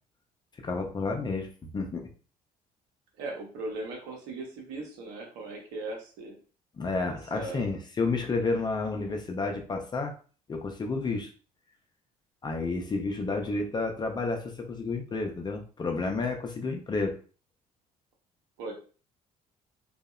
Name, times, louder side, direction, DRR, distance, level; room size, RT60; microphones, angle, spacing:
voice 1, 0.6-2.1 6.8-10.1 10.5-11.3 12.4-17.1, left 3 dB, 20° left, 3 dB, 0.4 m, -31 dB
voice 2, 3.2-6.3 7.1-7.8 8.9-9.1 18.6-18.7, right 2 dB, 60° right, 0 dB, 0.8 m, -38 dB
2.6 x 2.0 x 2.3 m, 0.38 s
figure-of-eight pair, 50°, 20 cm